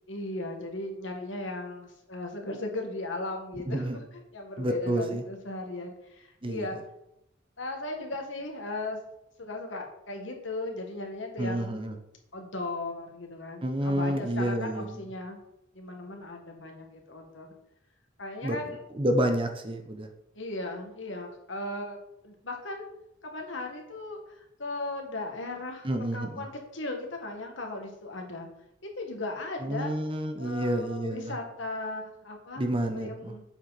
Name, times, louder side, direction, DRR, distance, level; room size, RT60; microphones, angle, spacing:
voice 1, 0.1-4.0 4.3-6.8 7.6-9.0 9.4-11.8 12.3-15.4 15.7-17.5 18.2-18.8 20.3-22.0 22.2-22.9 23.2-28.5 28.8-29.9 30.4-32.7 32.9-33.4, left 2 dB, 65° left, 2 dB, 1.7 m, -37 dB
voice 2, 3.7-4.0 4.6-5.2 6.4-6.7 11.4-12.0 13.6-15.0 18.4-20.1 25.8-26.5 29.6-31.4 32.6-33.4, right 1 dB, 25° right, 5 dB, 0.8 m, -29 dB
8.0 x 7.1 x 4.2 m, 0.83 s
head